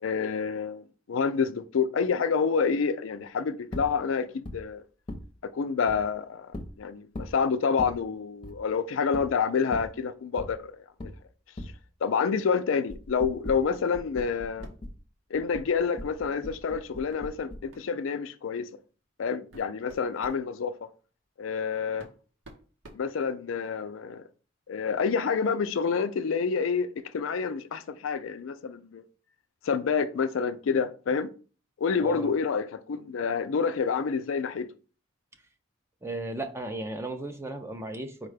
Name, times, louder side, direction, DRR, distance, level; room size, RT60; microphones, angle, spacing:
voice 1, 0.0-4.8 5.5-6.5 6.8-10.7 11.0-11.1 12.0-14.7 15.3-18.7 19.2-20.7 21.4-22.1 22.9-24.2 24.7-26.9 27.1-29.0 29.6-31.3 31.8-34.7, left 5 dB, 85° left, 0.4 m, -28 dB
sound 1, 3.7-3.9 4.5-4.6 5.1-5.3 5.9-6.0 6.5-6.7 7.1-7.4 7.8-8.0 8.4-8.6 9.1-9.3 9.7-9.9 10.4-10.5 11.0-11.1 11.6-11.7 12.9-15.0 15.3-17.7, left 1 dB, 25° left, 0.7 m, -39 dB
sound 2, 13.7-13.9 14.2-15.0 16.5-16.7 17.1-17.2 17.7-17.9 18.7-18.8 19.3-20.5 21.5-21.6 22.0-23.7, right 2 dB, 80° right, 0.9 m, -51 dB
voice 2, 32.0-32.3 36.0-38.3, right 1 dB, 15° right, 0.4 m, -35 dB
4.8 x 2.2 x 4.8 m
head